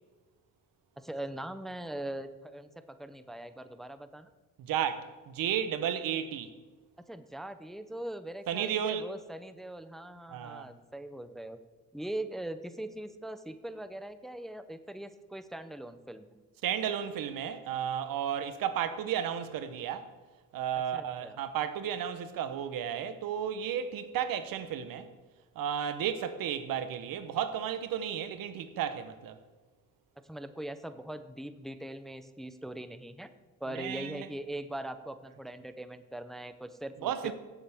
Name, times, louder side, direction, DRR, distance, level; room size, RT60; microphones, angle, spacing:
voice 1, 1.0-4.3 7.1-11.6 11.9-16.4 20.9-21.4 30.2-33.3 33.6-37.3, right 1 dB, ahead, 0.6 m, -41 dB
voice 2, 4.6-6.5 8.5-9.1 10.3-10.7 16.6-20.1 20.5-25.1 25.6-29.4 33.7-34.3 37.0-37.3, right 9 dB, 85° right, 0.9 m, -33 dB
16.0 x 7.3 x 3.5 m
cardioid pair, 90°, 34 cm